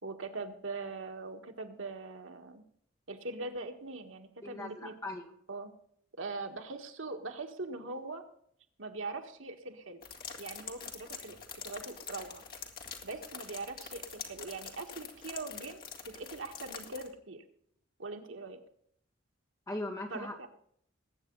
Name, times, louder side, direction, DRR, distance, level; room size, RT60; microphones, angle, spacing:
voice 1, 0.0-2.6 3.1-4.9 5.5-5.7 6.2-8.2 8.8-10.0 10.4-11.4 11.6-12.4 13.0-17.4 18.0-18.6 20.1-20.5, right 3 dB, 80° right, 5 dB, 1.7 m, -41 dB
voice 2, 4.4-5.3 19.7-20.4, left 2 dB, 15° left, 1 dB, 2.1 m, -39 dB
sound 1, 10.0-17.1, left 6 dB, 50° left, 2.0 m, -45 dB
20.0 x 8.7 x 4.0 m, 0.66 s
head